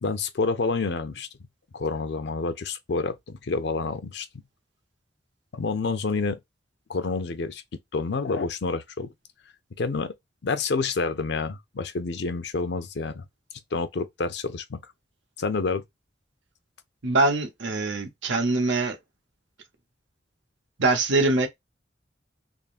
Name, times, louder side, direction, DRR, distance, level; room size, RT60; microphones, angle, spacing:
voice 1, 0.0-1.3 1.7-4.3 5.5-6.4 6.9-7.6 7.9-9.1 9.8-10.1 10.4-13.2 13.7-14.8 15.4-15.8, left 4 dB, 65° left, 0.5 m, -28 dB
voice 2, 17.0-19.0 20.8-21.5, right 2 dB, 80° right, 0.8 m, -23 dB
3.5 x 2.1 x 2.3 m
head